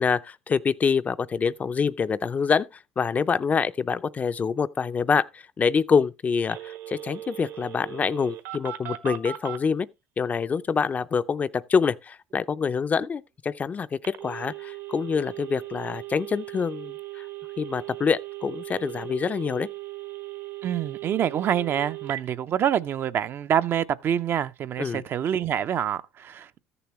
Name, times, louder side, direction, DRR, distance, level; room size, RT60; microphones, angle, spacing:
voice 1, 0.0-2.6 3.0-9.9 10.2-17.3 17.6-19.7 24.8-25.0, left 6 dB, 30° left, 0.4 m, -26 dB
Telephone, 6.5-9.6 14.0-22.2, right 15 dB, 65° right, 1.3 m, -38 dB
voice 2, 20.6-26.6, right 9 dB, 50° right, 0.5 m, -26 dB
14.0 x 6.9 x 3.0 m
supercardioid pair, 100°, 5 cm